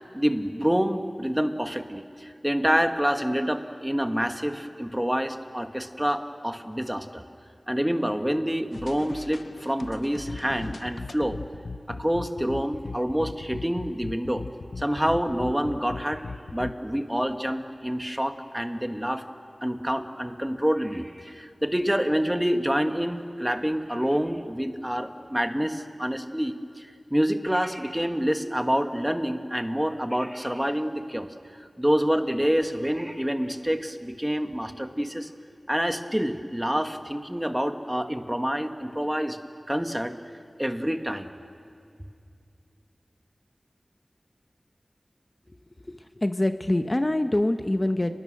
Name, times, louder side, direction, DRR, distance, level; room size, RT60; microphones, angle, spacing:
voice 1, 0.1-7.2 7.7-11.4 11.9-14.4 14.8-16.2 16.5-19.2 19.6-35.3 35.7-39.4 39.7-40.1 40.6-41.3, equal, 10° right, 7 dB, 1.4 m, -27 dB
sound 1, 8.7-16.8, left 3 dB, 85° left, 0.7 m, -39 dB
voice 2, 45.5-48.2, left 1 dB, 30° left, 8 dB, 0.8 m, -26 dB
30.0 x 20.5 x 6.5 m, 2.4 s
wide cardioid pair, 50°, 0 cm